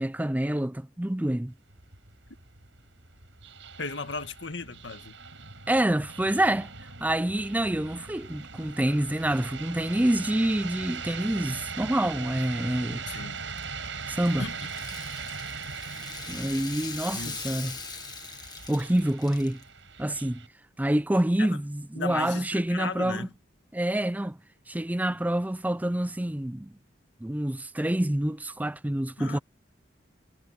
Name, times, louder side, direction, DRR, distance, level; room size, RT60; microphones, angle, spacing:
voice 1, 0.0-1.5 5.7-6.7 7.0-13.0 14.1-14.4 16.3-17.8 18.7-19.6 20.0-20.4 20.8-23.3 23.7-24.4 24.7-26.7 27.2-29.4, right 1 dB, 10° right, 0.5 m, -27 dB
sound 1, 1.5-20.5, right 5 dB, 85° right, 6.2 m, -40 dB
voice 2, 3.8-5.2 13.1-13.4 14.4-14.7 17.1-17.4 21.4-21.5 22.0-23.3 29.2-29.4, left 4 dB, 70° left, 1.8 m, -36 dB
Rattle (instrument), 13.4-19.6, left 5 dB, 25° left, 1.7 m, -41 dB
head